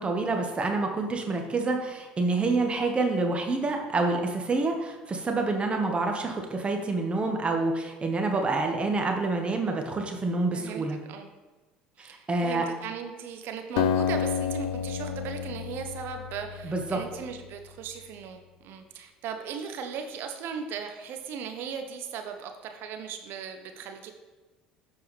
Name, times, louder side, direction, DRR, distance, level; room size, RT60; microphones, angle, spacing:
voice 1, 0.0-11.0 12.0-12.6 16.6-17.0, right 3 dB, 25° right, 3 dB, 1.3 m, -27 dB
voice 2, 10.5-11.3 12.0-24.2, right 7 dB, 55° right, 6 dB, 0.8 m, -37 dB
Acoustic guitar, 13.8-17.3, left 8 dB, 65° left, 0.4 m, -30 dB
11.0 x 4.6 x 3.3 m, 1.2 s
hypercardioid pair, 70°, 4 cm